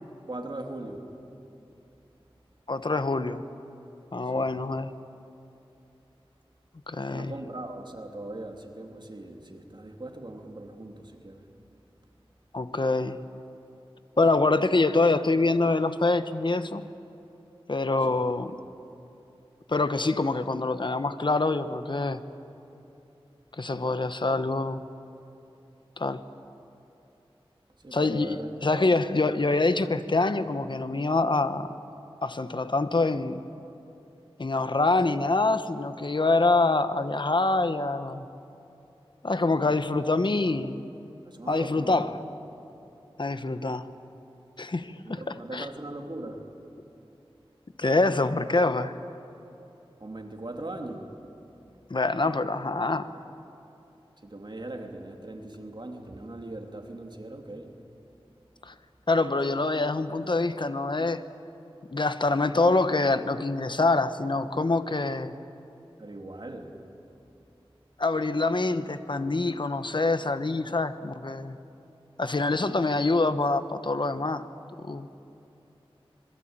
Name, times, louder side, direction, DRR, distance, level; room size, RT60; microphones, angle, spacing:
voice 1, 0.3-1.1 4.2-4.5 7.1-11.5 27.8-29.0 39.6-39.7 41.2-42.0 45.0-46.4 50.0-51.1 54.2-57.7 66.0-66.7, right 2 dB, 50° right, 2 dB, 3.1 m, -40 dB
voice 2, 2.7-3.4 4.1-4.9 6.9-7.3 12.5-13.2 14.2-16.8 17.7-18.6 19.7-22.2 23.6-24.9 26.0-26.3 27.9-31.7 32.2-33.4 34.4-38.2 39.2-40.8 41.5-42.2 43.2-43.8 44.6-45.7 47.8-49.0 51.9-53.1 58.6-58.7 59.1-61.2 61.9-65.3 68.0-71.6 72.2-74.5 74.8-75.1, left 3 dB, 55° left, 11 dB, 1.1 m, -25 dB
26.0 x 21.5 x 9.0 m, 2.9 s
wide cardioid pair, 55°, 10 cm